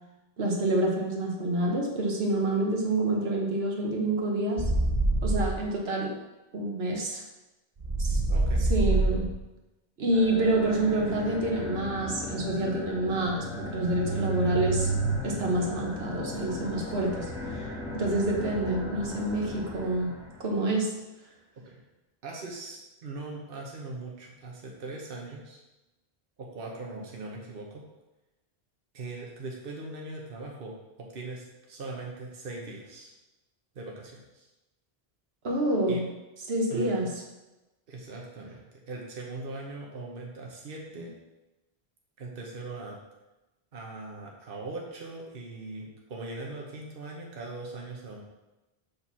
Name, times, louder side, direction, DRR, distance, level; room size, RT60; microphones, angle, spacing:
voice 1, 0.4-4.7 5.2-6.1 6.5-7.2 8.0-8.2 8.7-9.3 10.0-14.9 15.2-17.7 17.9-20.9 35.4-36.1 36.5-37.1, right 1 dB, 80° right, -1 dB, 1.3 m, -27 dB
sound 1, 4.6-5.6 7.8-9.4 13.6-15.2, right 2 dB, 40° right, 0.8 m, -26 dB
voice 2, 8.3-8.7 21.7-21.8 22.2-25.6 26.4-27.8 28.9-33.1 33.7-34.5 35.9-36.0 36.7-37.1 37.9-41.1 42.2-43.0 43.7-48.2, right 3 dB, 65° right, -2 dB, 1.2 m, -40 dB
sound 2, 10.0-20.5, left 3 dB, 5° right, 1.2 m, -38 dB
5.2 x 4.2 x 6.1 m, 1.0 s
omnidirectional pair, 1.0 m